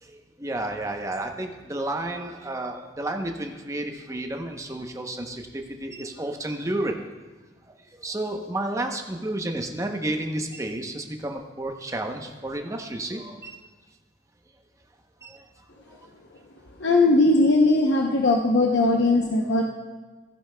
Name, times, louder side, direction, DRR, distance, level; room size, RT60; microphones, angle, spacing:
voice 1, 0.0-6.9 8.0-13.6 15.2-15.4 15.9-16.0, right 1 dB, 15° right, 4 dB, 0.8 m, -31 dB
voice 2, 16.8-19.6, left 2 dB, 70° left, 0 dB, 0.7 m, -19 dB
15.5 x 10.5 x 2.2 m, 1.3 s
head